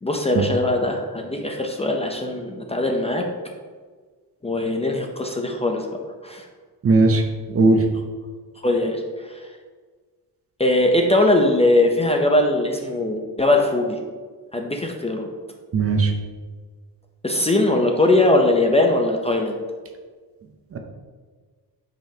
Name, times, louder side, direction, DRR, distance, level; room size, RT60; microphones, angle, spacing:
voice 1, 0.0-3.3 4.4-5.9 6.2-6.5 8.6-9.4 10.6-14.0 14.5-15.3 17.2-19.6, left 2 dB, 15° left, 1 dB, 0.5 m, -20 dB
voice 2, 6.8-7.2 7.5-7.8 15.7-16.1 20.7-20.8, right 3 dB, 35° right, 4 dB, 0.7 m, -17 dB
8.9 x 5.3 x 2.8 m, 1.5 s
wide cardioid pair, 150°, 39 cm